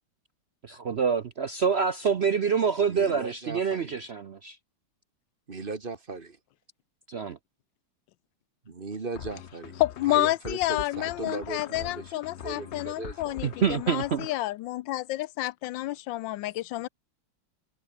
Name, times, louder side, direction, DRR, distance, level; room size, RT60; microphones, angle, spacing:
voice 1, 0.6-4.6 7.1-7.4 13.4-14.3, right 6 dB, 65° right, 0.6 m, -26 dB
voice 2, 2.9-4.0 5.5-6.4 8.6-9.8 10.1-12.1 12.4-13.5, right 4 dB, 30° right, 1.6 m, -38 dB
sound 1, 9.1-14.3, left 9 dB, 55° left, 0.7 m, -43 dB
voice 3, 9.8-16.9, left 16 dB, 75° left, 1.2 m, -29 dB
open air
omnidirectional pair, 2.1 m